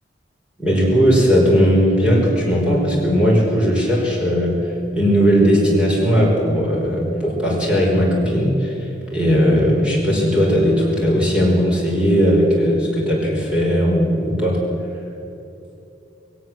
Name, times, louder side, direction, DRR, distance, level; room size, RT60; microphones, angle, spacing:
voice 1, 0.6-4.6 4.9-8.7 9.1-14.6, equal, 5° right, -4 dB, 5.5 m, -17 dB
21.0 x 17.5 x 7.9 m, 2.7 s
head